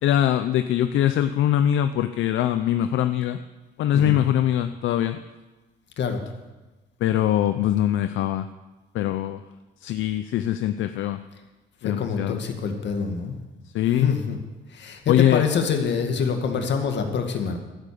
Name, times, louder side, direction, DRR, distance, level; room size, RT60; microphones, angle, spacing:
voice 1, 0.0-3.4 3.8-5.2 7.0-8.5 8.9-9.4 9.8-11.2 11.8-12.4 13.7-14.1 15.1-15.4, left 11 dB, 80° left, 9 dB, 0.6 m, -22 dB
voice 2, 11.8-13.4 13.9-14.4 14.7-17.6, left 6 dB, 65° left, 5 dB, 2.0 m, -26 dB
13.0 x 10.0 x 6.9 m, 1.2 s
cardioid pair, 90°, 20 cm